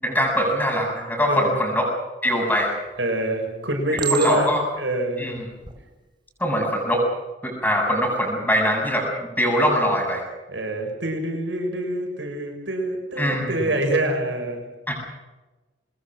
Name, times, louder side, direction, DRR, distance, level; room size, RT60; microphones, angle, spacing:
voice 1, 0.0-1.9 2.2-2.7 4.1-4.6 5.2-5.4 6.4-7.0 7.4-10.2 13.2-13.5 14.9-15.1, equal, 10° left, 1 dB, 7.5 m, -22 dB
voice 2, 1.3-1.6 3.0-4.5 4.8-5.3 10.5-14.6, right 1 dB, 85° right, 2 dB, 6.8 m, -25 dB
Chink clink, 2.5-3.0 4.0-4.8 5.5-5.8, right 7 dB, 25° right, 3.5 m, -30 dB
24.5 x 21.0 x 6.3 m, 1.2 s
head